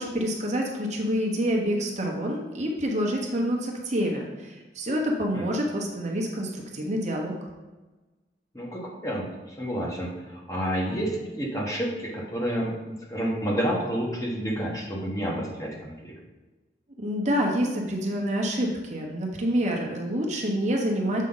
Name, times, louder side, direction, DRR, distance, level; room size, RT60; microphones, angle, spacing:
voice 1, 0.0-7.3 17.0-21.2, equal, 40° right, 0 dB, 1.1 m, -27 dB
voice 2, 8.5-16.1, equal, 20° left, -2 dB, 1.2 m, -30 dB
7.5 x 5.0 x 3.9 m, 1.2 s
head